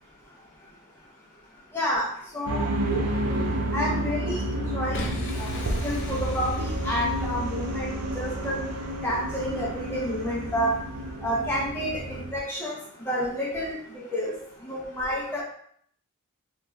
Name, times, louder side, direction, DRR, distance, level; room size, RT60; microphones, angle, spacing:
voice 1, 1.7-2.1 2.3-2.7 3.7-5.1 5.4-5.5 5.8-7.9 8.2-8.6 9.0-10.7 11.2-12.8 13.1-14.3 14.6-15.4, equal, 10° left, -5 dB, 0.5 m, -29 dB
sound 1, 2.5-12.3, right 1 dB, 85° right, 0.5 m, -30 dB
Boom, 4.9-7.9, left 2 dB, 60° left, 0.4 m, -38 dB
2.8 x 2.3 x 3.1 m, 0.63 s
head